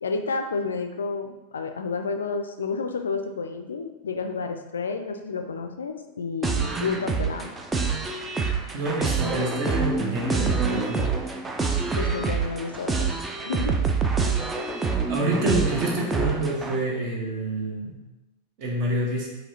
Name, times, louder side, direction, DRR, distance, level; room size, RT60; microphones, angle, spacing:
voice 1, 0.0-7.5 12.0-13.1 13.4-13.8, left 4 dB, 70° left, 7 dB, 0.3 m, -30 dB
sound 1, 6.4-16.8, right 4 dB, 15° right, 0.4 m, -26 dB
voice 2, 8.7-11.0 14.6-18.0 18.6-19.3, right 1 dB, 40° right, -2 dB, 1.2 m, -28 dB
4.6 x 3.2 x 2.8 m, 1.0 s
figure-of-eight pair, 90°, 0 cm